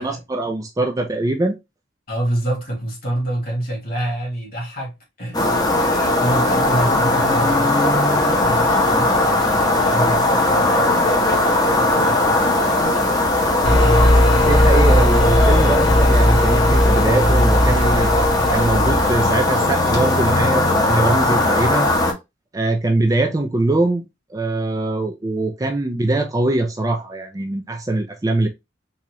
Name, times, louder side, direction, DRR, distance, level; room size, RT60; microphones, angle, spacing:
voice 1, 0.0-1.6 14.4-21.9 22.5-24.0 24.3-28.5, right 2 dB, 20° right, 0.4 m, -22 dB
voice 2, 2.1-4.9 5.2-14.4, right 1 dB, 50° left, 1.8 m, -28 dB
sound 1, 5.3-22.1, left 2 dB, 20° left, 0.8 m, -18 dB
sound 2, 13.6-19.3, left 1 dB, 80° left, 1.0 m, -17 dB
4.1 x 2.4 x 2.9 m
head